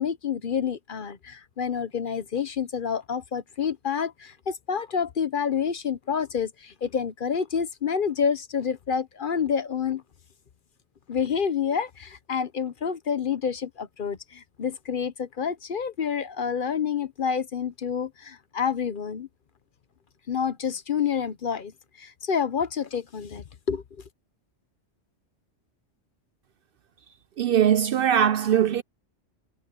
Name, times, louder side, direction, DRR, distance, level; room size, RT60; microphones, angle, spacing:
voice 1, 0.0-10.0 11.1-19.3 20.3-21.7 22.0-23.8, left 7 dB, 50° left, 0.9 m, -28 dB
voice 2, 27.4-28.8, right 9 dB, 60° right, 0.6 m, -21 dB
omnidirectional pair, 1.2 m